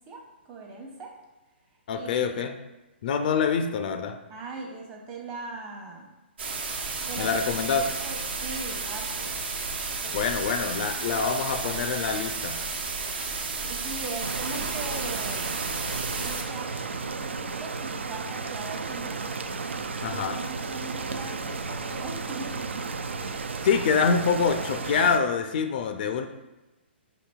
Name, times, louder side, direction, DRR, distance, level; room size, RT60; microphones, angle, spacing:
voice 1, 0.1-1.1 1.9-2.3 4.3-6.1 7.1-7.4 7.7-9.4 10.0-10.2 11.0-11.8 13.6-15.7 16.2-16.7 17.0-19.2 20.0-22.9, right 3 dB, 25° right, 0 dB, 0.9 m, -40 dB
voice 2, 1.9-2.5 3.0-4.2 7.2-7.9 10.1-12.6 20.0-20.4 23.6-26.3, left 6 dB, 50° left, 7 dB, 0.3 m, -25 dB
sound 1, 6.4-16.4, right 4 dB, 65° right, 0.8 m, -32 dB
sound 2, 14.2-25.2, right 4 dB, 85° right, 0.4 m, -34 dB
4.9 x 4.0 x 2.3 m, 1.1 s
hypercardioid pair, 135°, 6 cm